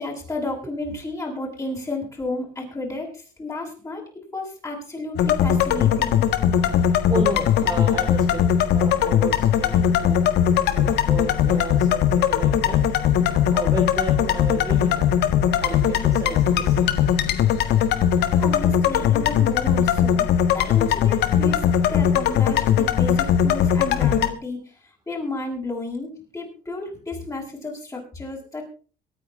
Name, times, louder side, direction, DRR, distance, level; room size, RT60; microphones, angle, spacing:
voice 1, 0.0-4.0 4.3-6.2 18.4-21.6 21.9-24.6 25.1-28.6, left 2 dB, 20° left, -1 dB, 7.4 m, -32 dB
sound 1, 5.2-24.3, left 9 dB, 75° left, 1.6 m, -20 dB
voice 2, 7.1-8.4 8.7-10.2 10.7-15.1 15.6-16.9 21.3-21.4, right 2 dB, 20° right, 2 dB, 2.7 m, -32 dB
23.0 x 9.6 x 3.8 m, 0.38 s
cardioid pair, 110°, 17 cm